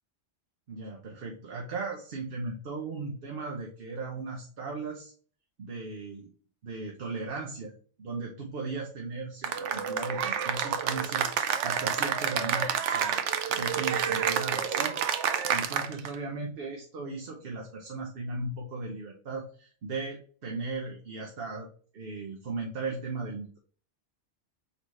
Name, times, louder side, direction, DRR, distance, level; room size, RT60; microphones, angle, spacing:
voice 1, 0.7-5.1 5.6-6.3 6.6-7.7 8.0-11.3 11.6-13.2 13.5-15.0 15.5-21.7 21.9-23.6, right 3 dB, 55° right, 0 dB, 1.0 m, -37 dB
Cheering / Applause, 9.4-16.2, right 8 dB, 90° right, 0.9 m, -29 dB
4.1 x 3.9 x 3.1 m, 0.43 s
omnidirectional pair, 1.2 m